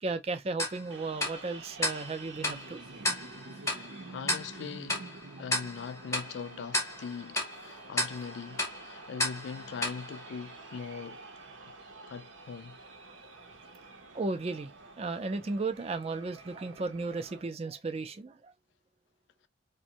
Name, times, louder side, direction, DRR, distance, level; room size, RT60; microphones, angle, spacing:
voice 1, 0.0-2.8 14.1-14.7 15.0-18.5, right 3 dB, 30° right, 0.4 m, -34 dB
Tick-tock, 0.6-11.0, left 1 dB, 15° left, 0.6 m, -35 dB
sound 1, 0.9-17.4, right 3 dB, 75° right, 0.7 m, -49 dB
voice 2, 3.7-11.2 11.6-11.7 12.1-12.8, left 6 dB, 65° left, 0.3 m, -41 dB
2.5 x 2.2 x 2.7 m
head